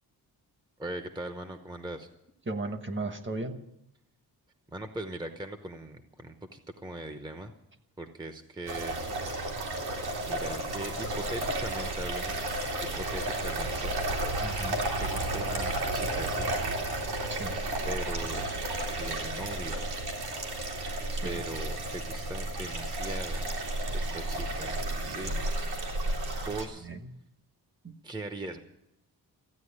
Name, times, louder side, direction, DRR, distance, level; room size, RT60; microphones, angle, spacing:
voice 1, 0.8-2.1 4.7-7.5 8.0-9.0 10.2-12.5 13.0-13.9 15.0-16.6 17.8-18.5 19.0-19.8 21.2-23.5 23.9-25.4 26.5-26.9 28.0-28.6, right 2 dB, 10° right, 7 dB, 0.9 m, -40 dB
voice 2, 2.5-3.6 14.4-14.8 17.3-17.6 21.1-21.4 26.8-27.0 27.8-28.0, right 2 dB, 30° right, 8 dB, 1.4 m, -36 dB
sound 1, 8.7-26.6, right 1 dB, 80° right, 3.6 m, -32 dB
15.0 x 9.6 x 9.7 m, 0.83 s
wide cardioid pair, 140°, 37 cm